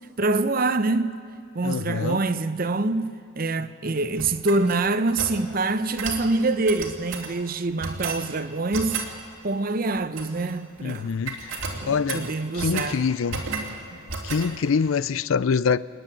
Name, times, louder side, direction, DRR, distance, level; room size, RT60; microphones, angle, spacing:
voice 1, 0.2-1.2 1.5-9.1 9.4-11.1 11.7-13.0, right 3 dB, 45° right, 0.7 m, -25 dB
voice 2, 1.6-2.2 10.8-11.6 11.9-12.3 12.5-13.4 14.2-15.8, left 5 dB, 75° left, 0.4 m, -25 dB
sound 1, 4.2-5.4 6.0-6.3 6.7-7.3 7.8-8.2 8.7-9.1 9.9-10.5 10.8-11.0 11.3-12.9 13.3-13.8 14.1-14.5, right 4 dB, 70° right, 2.8 m, -33 dB
28.5 x 10.0 x 9.0 m
head